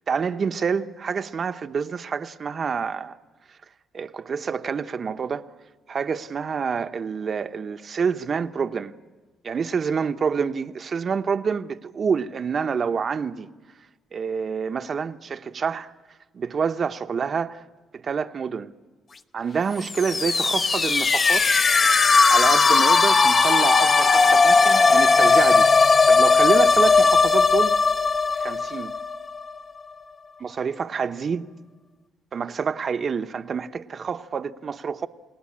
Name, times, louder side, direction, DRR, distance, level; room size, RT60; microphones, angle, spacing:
voice 1, 0.1-3.2 3.9-5.4 5.9-8.9 9.4-13.5 14.1-15.9 16.3-17.6 17.9-18.7 19.3-21.5 22.3-25.7 26.1-27.8 28.4-28.9 30.4-31.5 32.3-35.1, right 6 dB, 45° right, 0.9 m, -27 dB
sound 1, 19.8-29.6, left 4 dB, 35° left, 0.9 m, -18 dB
29.5 x 18.5 x 8.6 m
cardioid pair, 100°, 0 cm